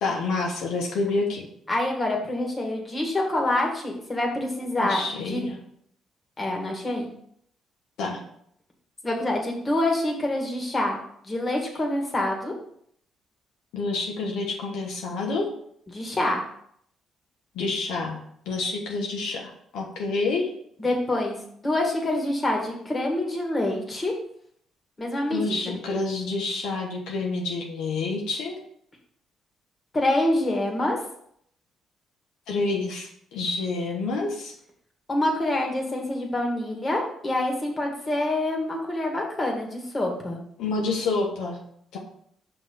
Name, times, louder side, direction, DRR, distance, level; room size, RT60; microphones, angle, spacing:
voice 1, 0.0-1.5 4.8-5.6 8.0-8.2 13.7-15.5 17.5-18.2 18.4-20.5 25.3-28.6 32.5-34.5 40.6-41.6 41.9-42.0, left 3 dB, 90° left, 0 dB, 1.3 m, -28 dB
voice 2, 1.7-5.0 5.3-5.4 6.4-7.1 9.0-11.0 11.2-12.5 15.9-16.4 20.8-21.4 21.6-24.1 25.0-25.7 29.9-31.0 35.1-40.4, left 1 dB, 25° left, 0 dB, 1.9 m, -26 dB
5.7 x 4.2 x 5.4 m, 0.68 s
cardioid pair, 90°, 0 cm